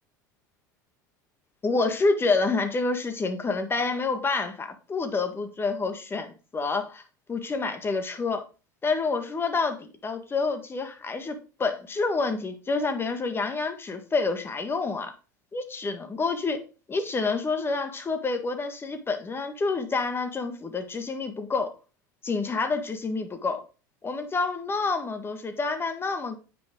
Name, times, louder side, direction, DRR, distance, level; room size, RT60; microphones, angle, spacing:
voice 1, 1.6-7.0 7.3-8.4 8.8-15.1 15.5-16.6 16.9-21.7 22.2-23.6 24.0-26.4, left 3 dB, 20° left, 1.6 m, -28 dB
9.2 x 5.4 x 3.8 m
hypercardioid pair, 80°, 10 cm